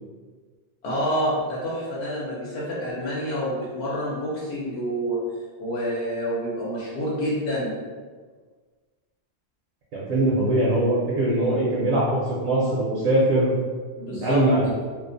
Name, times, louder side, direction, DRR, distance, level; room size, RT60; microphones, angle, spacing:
voice 1, 0.8-5.2 5.6-7.8 14.0-14.4, equal, 75° left, -6 dB, 0.9 m, -28 dB
voice 2, 9.9-13.5 14.1-14.6, right 1 dB, 70° right, -6 dB, 0.8 m, -22 dB
2.4 x 2.0 x 2.6 m, 1.5 s
omnidirectional pair, 1.1 m